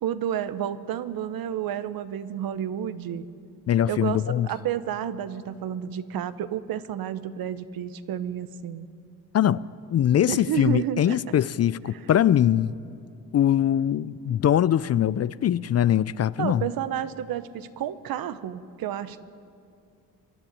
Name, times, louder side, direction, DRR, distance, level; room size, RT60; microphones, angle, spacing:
voice 1, 0.0-3.3 3.9-8.9 10.3-11.2 11.9-12.0 16.4-19.2, right 10 dB, 70° right, 1.0 m, -31 dB
voice 2, 3.7-4.5 9.3-12.7 13.3-16.6, left 10 dB, 45° left, 0.5 m, -22 dB
25.0 x 10.5 x 10.0 m
cardioid pair, 75°, 37 cm